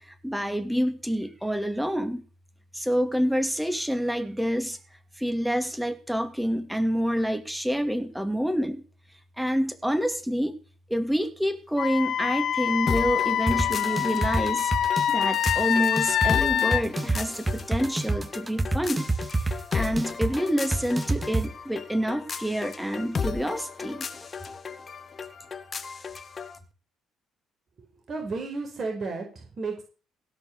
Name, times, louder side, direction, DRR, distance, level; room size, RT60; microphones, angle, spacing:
voice 1, 0.0-2.2 2.7-4.8 5.2-8.8 9.4-10.6 10.9-19.1 19.4-24.1, equal, 5° right, 9 dB, 2.7 m, -27 dB
Wind instrument woodwind instrument, 11.8-16.8, left 10 dB, 65° left, 0.6 m, -25 dB
sound 1, 12.9-26.6, left 5 dB, 40° left, 1.7 m, -35 dB
sound 2, 13.5-21.4, right 2 dB, 20° right, 2.0 m, -27 dB
voice 2, 28.1-29.8, right 3 dB, 45° right, 2 dB, 5.2 m, -32 dB
17.0 x 6.2 x 8.1 m, 0.38 s
hypercardioid pair, 55°, 0 cm